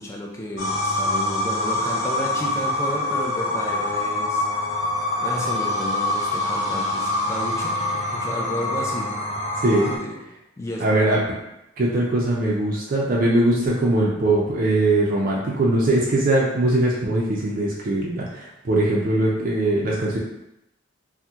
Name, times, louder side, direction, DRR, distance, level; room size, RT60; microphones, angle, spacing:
voice 1, 0.0-4.6 5.2-7.8 8.1-9.1 9.9-10.2 10.6-11.2, equal, 15° left, -2 dB, 0.4 m, -32 dB
sound 1, 0.6-10.0, left 2 dB, 90° left, 0.8 m, -25 dB
voice 2, 9.6-9.9 10.8-11.2 11.8-20.2, right 1 dB, 45° right, -4 dB, 0.4 m, -21 dB
2.8 x 2.1 x 3.4 m, 0.89 s
head